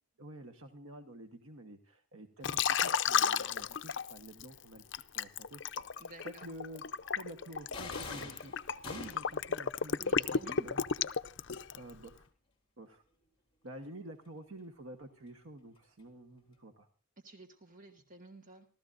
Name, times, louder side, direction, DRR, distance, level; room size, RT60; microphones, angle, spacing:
voice 1, 0.2-5.6 6.2-6.8 7.1-10.8 11.7-12.2 12.8-13.0 13.6-16.9, right 1 dB, 70° right, 6 dB, 1.2 m, -49 dB
Liquid, 2.4-4.4 4.9-11.9, left 6 dB, 60° left, 0.6 m, -32 dB
voice 2, 6.0-6.5 10.0-10.7 17.2-18.7, right 1 dB, 40° right, 5 dB, 1.5 m, -52 dB
sound 1, 7.7-9.5, left 3 dB, 25° left, 3.9 m, -44 dB
28.5 x 13.5 x 2.6 m, 0.39 s
head